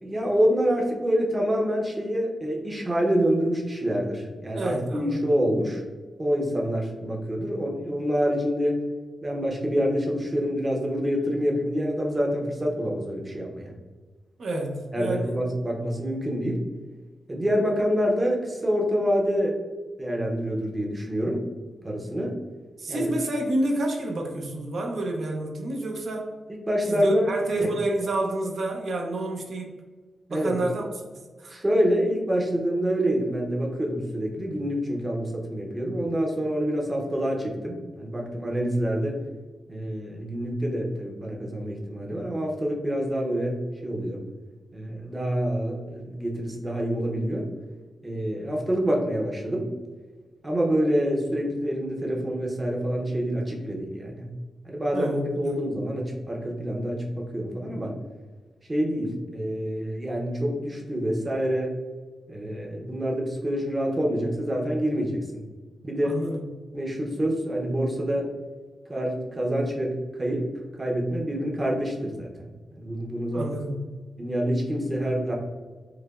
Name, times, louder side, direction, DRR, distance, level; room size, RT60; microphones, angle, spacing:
voice 1, 0.0-5.8 6.2-8.8 9.2-13.7 14.9-16.6 17.3-19.6 20.0-21.4 21.8-22.4 22.9-23.1 26.5-27.3 27.6-27.7 30.3-30.6 31.5-39.2 39.7-44.2 44.7-47.5 48.0-49.7 50.4-54.3 54.6-58.0 58.7-61.7 62.3-65.4 65.8-66.2 66.7-68.3 68.9-70.5 70.8-72.3 72.7-73.5 74.2-75.3, equal, 20° right, -1 dB, 0.7 m, -26 dB
voice 2, 4.5-5.3 14.4-15.3 22.8-26.3 26.9-29.8 30.3-30.8 31.4-31.6 54.9-55.6 66.0-66.5 73.3-73.8, right 1 dB, 65° right, 1 dB, 0.7 m, -29 dB
4.9 x 2.2 x 2.4 m, 1.4 s
wide cardioid pair, 105°, 0 cm